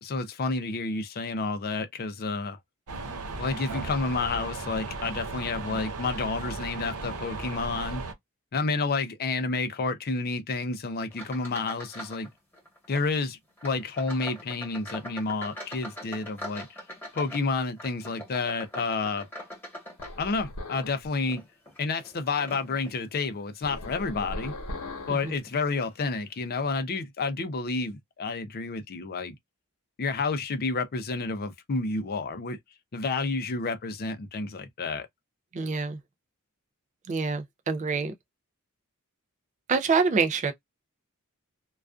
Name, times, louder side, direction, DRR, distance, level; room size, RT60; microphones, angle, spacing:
voice 1, 0.0-2.6 3.4-8.0 8.5-12.3 12.9-16.8 17.1-19.3 20.2-21.4 21.8-24.5 25.1-29.4 30.0-32.6 32.9-35.1, left 3 dB, 45° left, 0.5 m, -30 dB
sound 1, 2.9-8.1, right 3 dB, 80° right, 0.7 m, -36 dB
sound 2, 11.1-12.3 12.5-13.1 13.6-20.7 21.2-23.0 23.6-23.9 24.4-24.5 25.4-25.5 25.8-26.0, left 1 dB, 10° left, 1.0 m, -43 dB
sound 3, 20.0-21.1 23.6-25.4, left 2 dB, 80° left, 0.9 m, -38 dB
voice 2, 35.5-36.0 37.1-38.1 39.7-40.5, right 4 dB, 35° right, 0.3 m, -26 dB
2.4 x 2.3 x 2.2 m
head